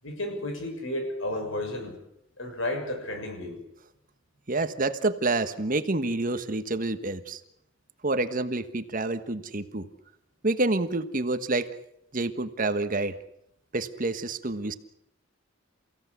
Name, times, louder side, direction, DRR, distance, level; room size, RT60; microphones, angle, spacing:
voice 1, 0.0-2.0 2.4-3.6, left 1 dB, 80° left, 5 dB, 6.8 m, -32 dB
voice 2, 4.5-7.4 8.0-9.9 10.4-11.7 12.1-13.2 13.7-14.8, right 2 dB, 45° right, 10 dB, 1.3 m, -28 dB
29.5 x 16.5 x 8.2 m, 0.77 s
head